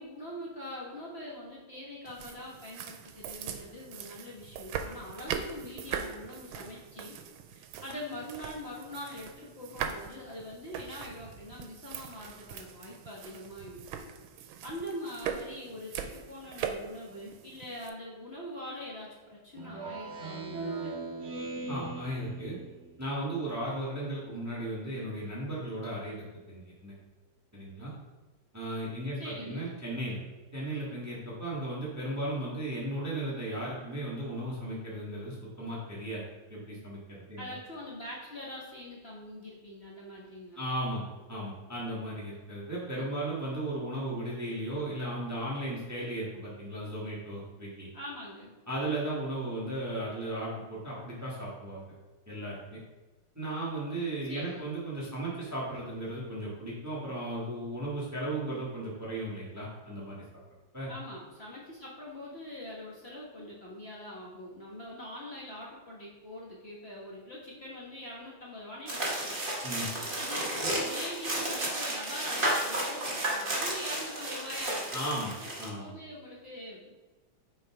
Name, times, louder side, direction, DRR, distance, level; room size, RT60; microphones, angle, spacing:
voice 1, 0.0-7.1 7.5-14.1 14.6-21.0 29.2-29.7 37.4-40.7 47.9-48.5 54.2-54.7 60.9-69.4 70.0-77.0, left 1 dB, 35° left, -5 dB, 1.3 m, -43 dB
sound 1, 2.1-17.9, right 7 dB, 90° right, 1.4 m, -41 dB
Speech synthesizer, 19.6-23.1, right 3 dB, 55° right, 0.7 m, -39 dB
voice 2, 21.7-22.6 23.0-26.9 27.5-27.9 28.5-30.2 30.5-36.2 36.5-37.5 40.6-47.9 48.7-51.8 52.3-52.8 53.3-60.2 60.7-60.9 69.6-69.9 74.9-75.3 75.6-75.9, right 1 dB, 10° right, -6 dB, 1.3 m, -36 dB
sound 2, 68.9-75.7, right 1 dB, 30° right, 1.2 m, -32 dB
6.8 x 3.9 x 4.7 m, 1.2 s
omnidirectional pair, 2.2 m